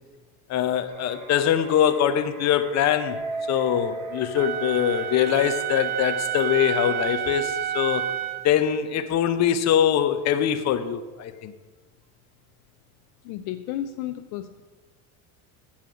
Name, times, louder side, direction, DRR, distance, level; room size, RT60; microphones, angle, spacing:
voice 1, 0.5-3.2 3.5-8.1 8.4-11.5, left 9 dB, 40° left, 0.7 m, -23 dB
sound 1, 0.9-7.0, right 1 dB, 45° right, 2.8 m, -46 dB
Keyboard (musical), 3.1-5.5, right 2 dB, 15° right, 3.1 m, -35 dB
Wind instrument woodwind instrument, 4.4-8.5, right 10 dB, 65° right, 0.8 m, -29 dB
voice 2, 13.2-14.6, left 11 dB, 80° left, 0.7 m, -33 dB
7.3 x 7.3 x 6.1 m
cardioid pair, 130°, 42 cm